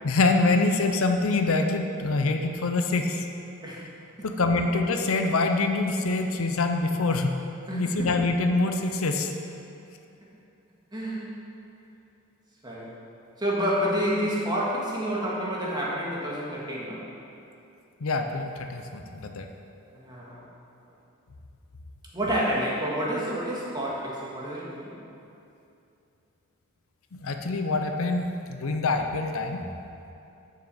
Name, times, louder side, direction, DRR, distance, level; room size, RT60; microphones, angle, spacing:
voice 1, 0.0-3.3 4.2-7.4 7.7-9.3 18.0-19.5 27.1-29.6, left 3 dB, 70° left, 5 dB, 0.6 m, -25 dB
voice 2, 7.7-8.1 10.9-11.3 12.6-12.9 13.4-17.0 19.9-20.4 22.1-24.9, equal, 20° right, -6 dB, 1.8 m, -29 dB
7.1 x 6.4 x 7.0 m, 2.7 s
head